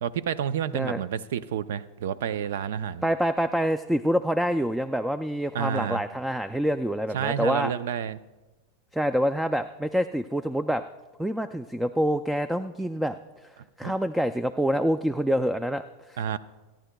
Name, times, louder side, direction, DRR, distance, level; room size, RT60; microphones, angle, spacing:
voice 1, 0.0-3.0 5.5-6.0 7.1-8.2 13.8-13.9 16.2-16.4, right 8 dB, 75° right, 16 dB, 0.5 m, -29 dB
voice 2, 3.0-7.7 8.9-10.8 11.2-13.1 13.4-13.5 13.8-16.2, equal, 5° right, 12 dB, 0.4 m, -26 dB
28.5 x 10.5 x 2.3 m, 1.2 s
hypercardioid pair, 110°, 0 cm